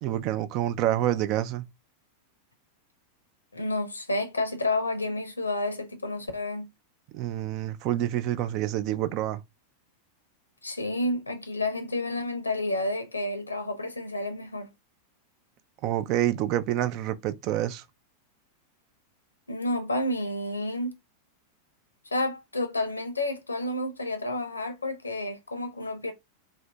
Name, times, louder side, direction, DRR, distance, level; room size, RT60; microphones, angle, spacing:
voice 1, 0.0-1.6 7.1-9.4 15.8-17.8, right 12 dB, 40° right, 0.4 m, -27 dB
voice 2, 3.5-6.7 10.6-14.7 19.5-20.9 22.1-26.1, left 2 dB, 80° left, 0.7 m, -30 dB
2.7 x 2.7 x 3.3 m
figure-of-eight pair, 90°, 0 cm